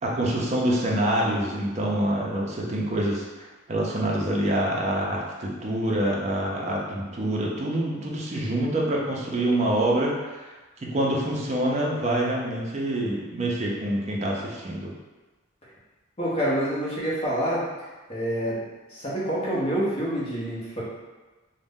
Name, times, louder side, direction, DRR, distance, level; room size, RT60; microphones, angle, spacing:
voice 1, 0.0-10.5 10.8-14.9, right 1 dB, 35° right, -3 dB, 0.4 m, -26 dB
voice 2, 16.2-17.6 18.1-18.6 18.9-20.8, right 1 dB, 30° left, -7 dB, 0.7 m, -27 dB
2.5 x 2.1 x 3.5 m, 1.2 s
head